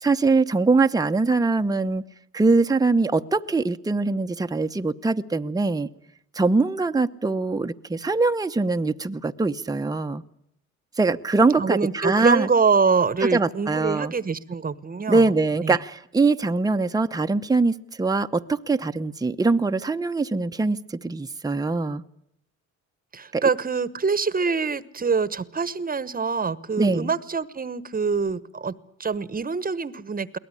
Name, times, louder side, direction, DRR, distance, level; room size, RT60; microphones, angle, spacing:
voice 1, 0.0-2.0 2.3-5.9 6.3-10.2 11.0-12.5 13.3-14.1 15.1-22.0 23.3-23.4 26.8-27.1, right 3 dB, 10° right, 7 dB, 0.9 m, -22 dB
voice 2, 11.6-15.3 15.6-15.8 23.1-28.7 29.0-30.4, right 5 dB, 30° right, 17 dB, 1.2 m, -25 dB
23.0 x 18.0 x 9.8 m, 0.74 s
cardioid pair, 90°, 30 cm